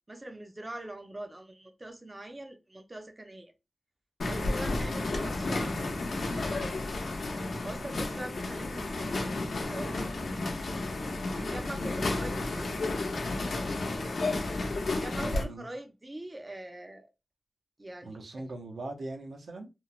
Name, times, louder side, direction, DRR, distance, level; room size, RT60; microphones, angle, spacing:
voice 1, 0.1-3.5 4.2-6.7 7.6-9.2 9.7-10.1 11.3-12.7 14.7-17.1 17.8-18.5, right 1 dB, 25° right, 0.4 m, -43 dB
sound 1, 4.2-15.4, left 2 dB, 85° left, 0.6 m, -32 dB
voice 2, 12.0-12.3 15.2-15.7 18.0-19.7, right 2 dB, 85° right, 0.6 m, -40 dB
3.0 x 2.1 x 2.3 m
wide cardioid pair, 130°, 0 cm